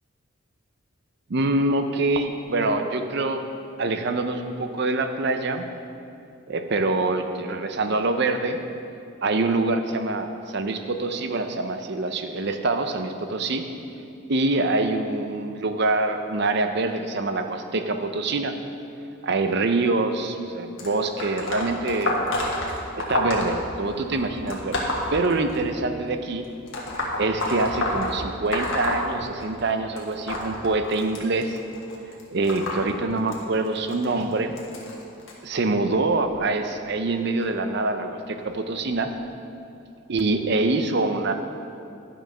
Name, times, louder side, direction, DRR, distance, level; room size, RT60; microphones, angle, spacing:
voice 1, 1.3-3.4 3.8-5.7 6.5-8.6 9.2-13.6 14.3-18.5 19.2-22.2 23.0-24.8 25.1-26.5 27.2-31.6 32.3-34.5 35.4-39.1 40.1-41.3, right 2 dB, 50° right, 7 dB, 0.6 m, -25 dB
sound 1, 20.8-25.9 26.7-29.7 30.0-35.3 36.1-36.4 37.4-37.5 38.4-38.5 39.2-39.3, left 1 dB, 65° left, 1.4 m, -29 dB
11.0 x 6.1 x 5.5 m, 2.6 s
head